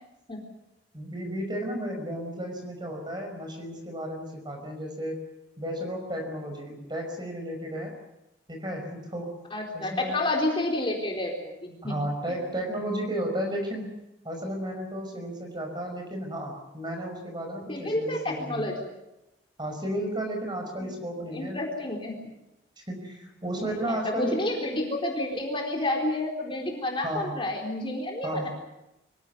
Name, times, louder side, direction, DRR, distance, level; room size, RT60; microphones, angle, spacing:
voice 1, 0.9-5.2 5.6-8.0 8.5-9.4 9.7-10.2 11.8-14.0 14.2-18.6 19.6-21.6 22.9-24.4 27.0-27.3 28.2-28.5, right 1 dB, 25° right, 3 dB, 5.5 m, -33 dB
voice 2, 9.5-12.0 17.7-18.7 20.8-20.9 21.3-22.2 23.6-28.5, left 1 dB, 25° left, 1 dB, 4.0 m, -30 dB
25.0 x 16.5 x 9.6 m, 0.93 s
head